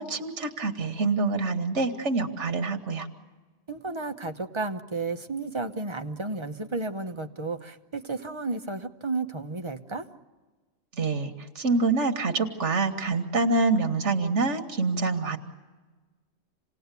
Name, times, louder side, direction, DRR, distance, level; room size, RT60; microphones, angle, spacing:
voice 1, 0.0-3.1 10.9-15.4, right 3 dB, 90° right, 6 dB, 1.7 m, -26 dB
voice 2, 3.7-10.1, right 3 dB, 25° right, 7 dB, 1.0 m, -32 dB
27.5 x 18.5 x 8.3 m, 1.3 s
omnidirectional pair, 1.2 m